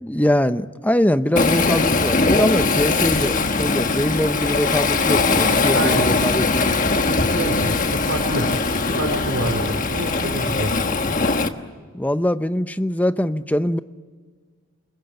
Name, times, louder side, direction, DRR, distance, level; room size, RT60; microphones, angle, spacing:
voice 1, 0.0-6.7 11.9-13.8, left 1 dB, 10° left, 11 dB, 0.7 m, -22 dB
Waves surf, 1.4-11.5, left 3 dB, 40° left, 1.3 m, -20 dB
voice 2, 5.7-6.1 7.3-8.5 9.0-10.7, right 1 dB, 70° right, 2 dB, 4.5 m, -26 dB
28.5 x 22.0 x 9.1 m, 1.5 s
head